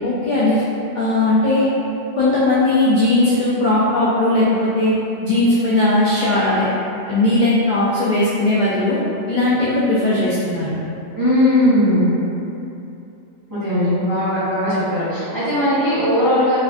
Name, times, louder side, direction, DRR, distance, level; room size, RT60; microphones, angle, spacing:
voice 1, 0.0-0.6 0.9-1.7 2.2-5.0 5.2-6.7 7.1-9.0 9.3-10.8, left 2 dB, 65° left, -8 dB, 0.4 m, -18 dB
voice 2, 11.2-12.1 13.5-16.6, left 1 dB, 20° right, -14 dB, 0.8 m, -18 dB
4.2 x 2.4 x 2.3 m, 2.8 s
omnidirectional pair, 1.3 m